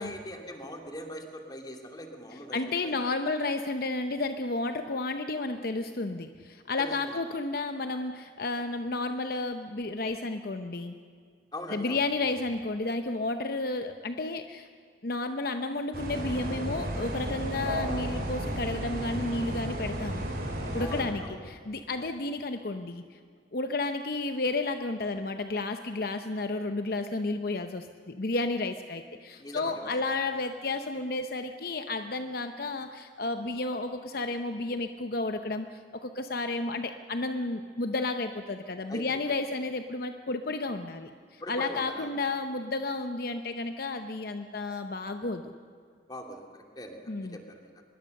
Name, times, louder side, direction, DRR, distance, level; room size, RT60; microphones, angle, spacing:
voice 1, 0.0-2.9 6.8-7.2 11.5-12.0 20.8-21.4 22.0-22.1 29.4-30.0 38.9-39.4 41.4-42.2 46.1-47.7, equal, 25° left, 3 dB, 2.6 m, -41 dB
voice 2, 2.5-11.0 11.7-14.7 15.0-20.3 20.7-23.2 23.5-45.5 47.1-47.4, left 2 dB, 55° left, 7 dB, 0.8 m, -32 dB
sound 1, 15.9-21.0, right 1 dB, 60° right, 4.6 m, -33 dB
24.5 x 21.5 x 6.6 m, 2.2 s
head